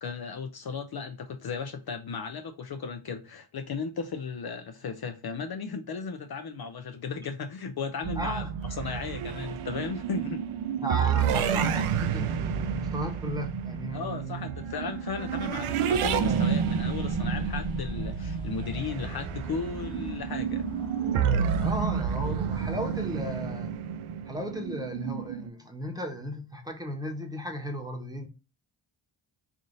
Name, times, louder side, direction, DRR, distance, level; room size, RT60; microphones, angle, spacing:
voice 1, 0.0-8.5 8.8-10.4 13.9-20.7, left 5 dB, 50° left, 0.5 m, -35 dB
sound 1, 8.0-25.5, right 7 dB, 90° right, 0.6 m, -30 dB
voice 2, 8.1-8.5 10.8-14.6 21.6-23.7 24.2-28.3, equal, 10° right, 1.0 m, -35 dB
sound 2, 15.9-21.6, left 2 dB, 10° left, 1.2 m, -40 dB
3.5 x 2.6 x 3.8 m
cardioid pair, 80°, 49 cm